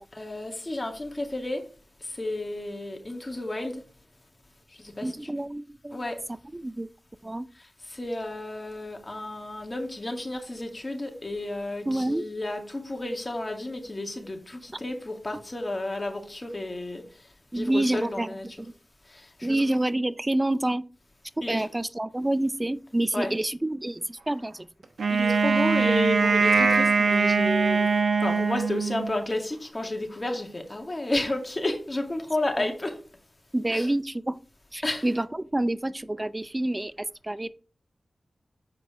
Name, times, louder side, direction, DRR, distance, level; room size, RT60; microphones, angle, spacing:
voice 1, 0.1-1.6 2.0-3.8 4.7-5.3 5.9-6.2 7.5-17.3 17.5-18.5 19.1-19.7 21.4-21.7 23.1-23.3 25.1-27.9 28.2-33.0 33.7-33.9 34.8-35.1, left 1 dB, 35° left, 2.1 m, -32 dB
voice 2, 5.0-6.0 6.5-6.9 7.2-7.5 11.9-12.3 17.5-18.3 19.4-20.8 21.4-24.7 32.6-32.7 33.5-34.4 34.7-37.5, right 1 dB, 25° right, 0.5 m, -28 dB
Wind instrument woodwind instrument, 25.0-29.2, right 4 dB, 85° right, 0.9 m, -22 dB
7.5 x 4.8 x 4.9 m
cardioid pair, 45°, 0 cm